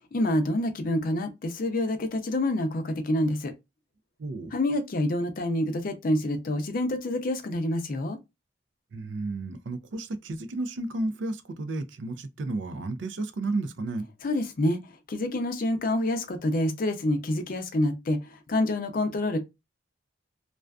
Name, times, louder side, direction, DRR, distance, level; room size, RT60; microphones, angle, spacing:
voice 1, 0.1-3.5 4.5-8.2 14.2-14.8 15.1-19.4, left 1 dB, 50° left, 0.5 m, -27 dB
voice 2, 4.2-4.5 8.9-14.1, right 2 dB, 70° right, 0.4 m, -32 dB
2.4 x 2.2 x 2.3 m
head